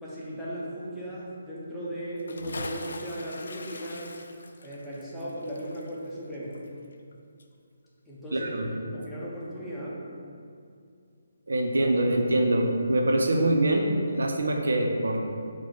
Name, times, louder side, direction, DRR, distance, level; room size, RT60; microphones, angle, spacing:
voice 1, 0.0-4.1 4.6-6.5 8.1-10.0, right 1 dB, ahead, -10 dB, 0.6 m, -37 dB
Bathtub (filling or washing) / Splash splatter, 2.2-7.1 7.4-7.5, left 2 dB, 75° left, 0.3 m, -42 dB
voice 2, 8.3-8.7 11.5-13.9 14.2-15.2, right 1 dB, 85° right, 2 dB, 0.5 m, -24 dB
4.0 x 2.1 x 4.5 m, 2.4 s
hypercardioid pair, 165°, 0 cm